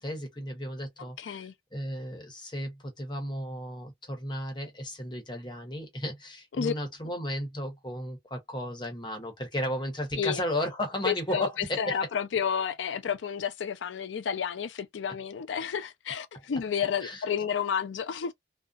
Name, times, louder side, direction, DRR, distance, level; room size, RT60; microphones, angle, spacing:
voice 1, 0.0-12.0 17.0-17.2, left 1 dB, 25° left, 0.9 m, -34 dB
voice 2, 1.2-1.5 6.6-6.7 10.2-10.4 11.0-11.5 11.8-18.3, left 7 dB, 85° left, 0.4 m, -31 dB
2.5 x 2.0 x 2.3 m
head